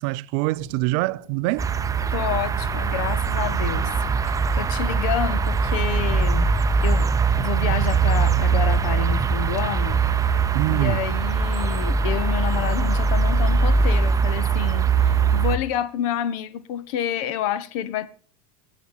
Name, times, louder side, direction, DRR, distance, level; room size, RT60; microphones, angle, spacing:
voice 1, 0.0-1.7 10.5-11.1, right 20 dB, 55° right, 0.4 m, -24 dB
sound 1, 0.5-9.5 9.9-10.0 12.1-12.2 14.6-14.7 14.9-15.0 16.2-16.3 17.0-17.1, left 4 dB, 80° left, 1.6 m, -44 dB
sound 2, 1.6-15.6, right 5 dB, 20° right, 0.7 m, -21 dB
voice 2, 2.1-3.9 4.2-6.5 6.8-7.1 7.4-10.0 10.3-18.1, left 10 dB, 65° left, 1.0 m, -29 dB
18.0 x 7.1 x 4.2 m
hypercardioid pair, 90°, 19 cm